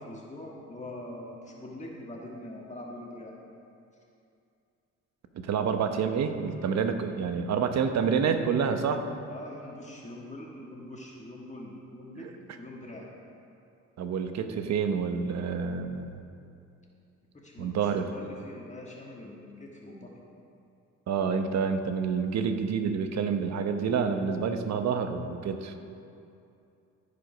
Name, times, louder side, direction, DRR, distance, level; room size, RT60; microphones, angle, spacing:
voice 1, 0.0-3.4 9.3-13.1 17.3-20.1, left 1 dB, 25° left, -2 dB, 1.7 m, -43 dB
voice 2, 5.4-9.0 14.0-16.2 17.6-18.0 21.1-25.7, right 6 dB, 60° right, 7 dB, 0.9 m, -28 dB
15.0 x 5.2 x 5.1 m, 2.6 s
cardioid pair, 90°, 30 cm